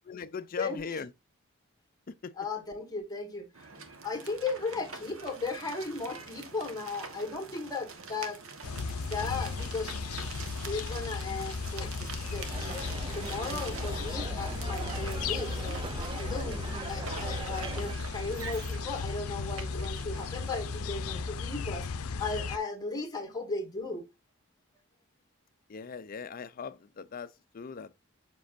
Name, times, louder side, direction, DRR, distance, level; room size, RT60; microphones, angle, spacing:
voice 1, 0.1-1.1 2.1-2.3 25.7-27.9, left 5 dB, 40° left, 0.5 m, -39 dB
voice 2, 2.4-3.5 4.0-8.4 9.0-9.9 10.5-15.8 16.1-21.9 22.2-24.0, left 3 dB, 20° left, 1.7 m, -36 dB
sound 1, 3.5-20.8, right 5 dB, 70° right, 1.3 m, -45 dB
sound 2, 8.6-22.6, left 4 dB, 85° left, 0.6 m, -35 dB
sound 3, 12.5-17.9, right 4 dB, 25° right, 0.3 m, -41 dB
7.4 x 6.1 x 2.6 m
head